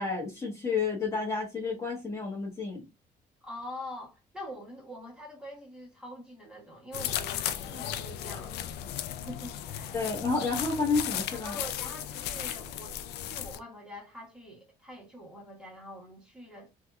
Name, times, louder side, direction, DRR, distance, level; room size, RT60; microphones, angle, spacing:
voice 1, 0.0-2.8 9.9-11.6, left 4 dB, 20° left, 1.2 m, -30 dB
voice 2, 3.4-8.8 9.1-9.9 11.4-16.7, left 1 dB, 5° right, 1.8 m, -44 dB
sound 1, 6.9-13.6, left 11 dB, 75° left, 0.4 m, -35 dB
3.3 x 2.8 x 2.3 m
cardioid pair, 110°, 17 cm